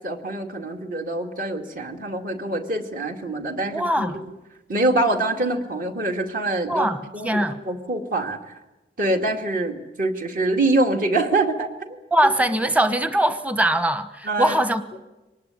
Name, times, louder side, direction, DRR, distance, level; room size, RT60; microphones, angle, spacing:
voice 1, 0.0-4.2 4.7-8.4 9.0-12.0 14.2-14.6, right 2 dB, 50° right, 4 dB, 2.4 m, -25 dB
voice 2, 3.7-4.2 6.7-7.6 12.1-15.0, right 1 dB, 10° right, 10 dB, 1.1 m, -22 dB
24.0 x 19.5 x 9.7 m, 1.1 s
head